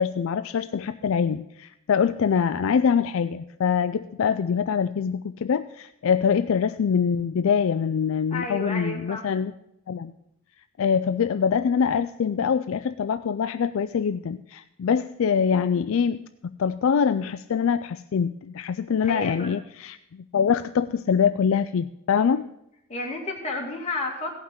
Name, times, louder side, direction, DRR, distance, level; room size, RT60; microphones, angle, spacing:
voice 1, 0.0-9.5 9.9-10.1 10.8-22.5, left 6 dB, 65° left, 12 dB, 0.4 m, -24 dB
voice 2, 8.3-9.2 19.0-19.5 22.9-24.3, left 2 dB, 30° left, -1 dB, 2.5 m, -31 dB
16.0 x 5.9 x 7.8 m, 0.82 s
head